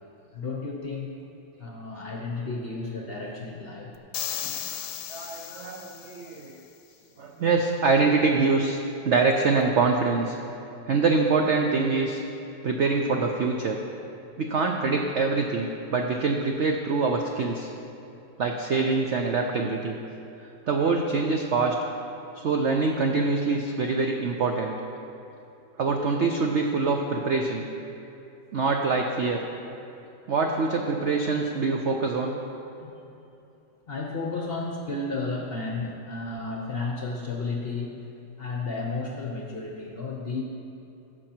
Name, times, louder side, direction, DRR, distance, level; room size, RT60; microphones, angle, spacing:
voice 1, 0.3-1.1 1.6-3.9 4.4-4.9 5.5-5.6 32.8-33.0 33.9-37.9 38.4-40.4, left 3 dB, 50° left, 0 dB, 0.7 m, -33 dB
sound 1, 4.1-6.4, left 10 dB, 75° left, 1.2 m, -35 dB
voice 2, 5.1-6.6 7.2-8.8 9.0-10.4 10.9-12.2 12.6-13.8 14.4-17.7 18.4-20.0 20.7-21.7 22.3-24.8 25.8-27.7 28.5-29.4 30.3-32.4, right 4 dB, 80° right, 2 dB, 0.6 m, -24 dB
15.0 x 6.1 x 4.4 m, 2.8 s
omnidirectional pair, 2.0 m